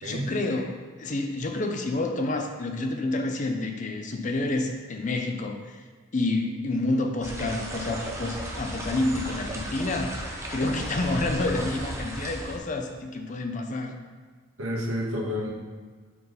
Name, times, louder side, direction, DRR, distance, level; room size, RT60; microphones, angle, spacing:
voice 1, 0.0-5.7 6.1-10.2 10.5-13.9, left 2 dB, 35° left, 4 dB, 0.5 m, -29 dB
sound 1, 7.2-12.6, right 1 dB, 15° right, 0.6 m, -35 dB
voice 2, 14.6-15.5, equal, 85° right, -2 dB, 1.3 m, -29 dB
4.7 x 4.1 x 4.9 m, 1.5 s
head